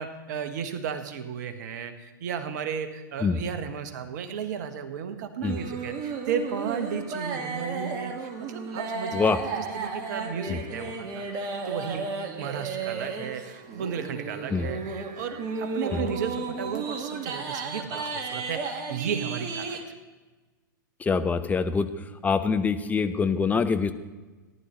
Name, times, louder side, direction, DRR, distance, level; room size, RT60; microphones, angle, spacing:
voice 1, 0.0-9.3 9.7-19.8, right 7 dB, 60° right, 9 dB, 1.2 m, -34 dB
sound 1, 5.4-19.8, right 4 dB, 35° right, 1.6 m, -34 dB
voice 2, 21.0-21.9 22.2-23.9, left 5 dB, 15° left, 10 dB, 0.7 m, -24 dB
18.5 x 11.0 x 3.0 m, 1.2 s
figure-of-eight pair, 100°, 11 cm